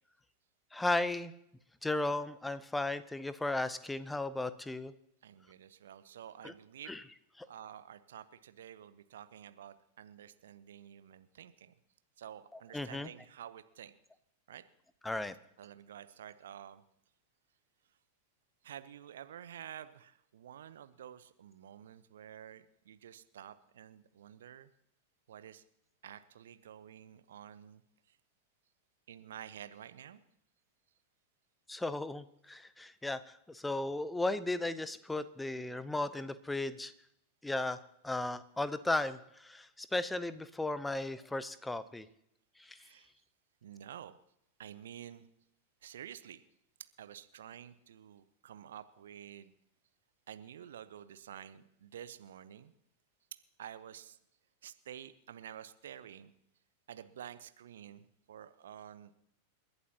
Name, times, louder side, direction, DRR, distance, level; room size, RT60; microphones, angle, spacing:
voice 1, 0.7-1.3 1.8-4.9 6.4-6.5 6.9-7.0 12.7-13.1 15.0-15.3 31.7-36.9 37.4-37.8 38.0-42.1 42.6-42.8, left 2 dB, 5° left, 15 dB, 0.8 m, -35 dB
voice 2, 5.2-7.0 7.5-11.7 12.2-13.9 14.5-14.6 15.6-16.8 18.6-24.7 25.3-25.6 26.0-27.8 28.1-28.2 29.1-30.2 42.7-43.1 43.6-44.2 44.6-45.3 45.8-46.4 47.0-49.5 50.3-52.7 53.6-54.2 54.6-56.3 56.9-59.1, right 10 dB, 60° right, 13 dB, 0.8 m, -50 dB
29.0 x 11.0 x 2.9 m, 0.77 s
figure-of-eight pair, 90°, 0 cm